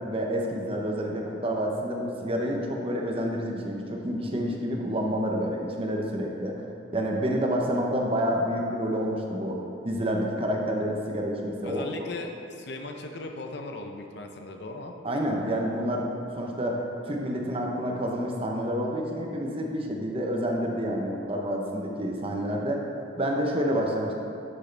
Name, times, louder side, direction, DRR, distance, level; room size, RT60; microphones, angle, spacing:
voice 1, 0.0-6.5 6.9-11.8 15.0-22.8 23.1-24.1, equal, 30° right, 0 dB, 0.9 m, -28 dB
voice 2, 11.6-15.0, left 2 dB, 60° left, 3 dB, 0.7 m, -38 dB
12.0 x 6.3 x 3.4 m, 2.7 s
head